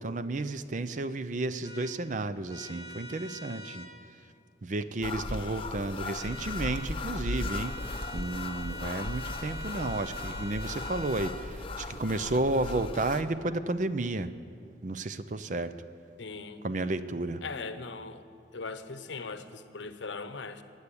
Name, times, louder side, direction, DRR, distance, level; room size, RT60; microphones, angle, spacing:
voice 1, 0.0-3.9 4.6-14.3 14.8-15.7 16.6-17.4, right 2 dB, 40° right, 12 dB, 0.5 m, -32 dB
sound 1, 1.6-1.9 2.5-3.9 6.1-6.9 7.2-11.4, left 1 dB, 25° right, 2.2 m, -43 dB
sound 2, 5.0-13.2, left 2 dB, 30° left, 0.6 m, -37 dB
voice 2, 5.3-5.7 16.2-16.6 17.4-18.2 18.5-20.6, left 4 dB, 80° left, 11 dB, 0.8 m, -40 dB
15.5 x 8.2 x 9.9 m, 2.4 s
head